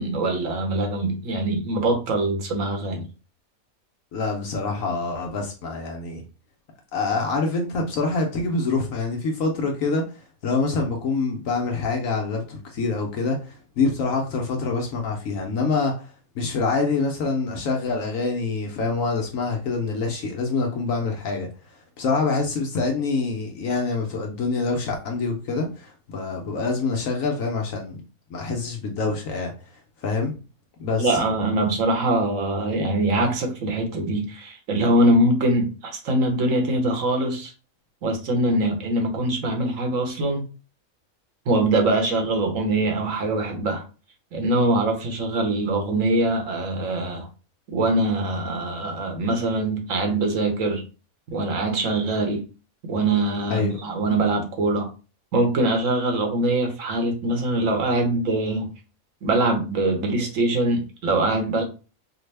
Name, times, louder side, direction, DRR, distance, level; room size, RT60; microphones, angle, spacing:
voice 1, 0.0-3.0 31.0-37.5 38.0-40.4 41.5-43.8 44.3-47.3 47.7-50.8 51.3-52.4 52.9-54.9 55.3-58.7 59.2-61.6, right 2 dB, 70° right, 1.3 m, -23 dB
voice 2, 4.1-6.2 6.9-28.0 28.3-30.4 30.8-31.2 53.5-53.8, left 4 dB, 70° left, 1.1 m, -26 dB
5.0 x 2.1 x 3.3 m
omnidirectional pair, 1.5 m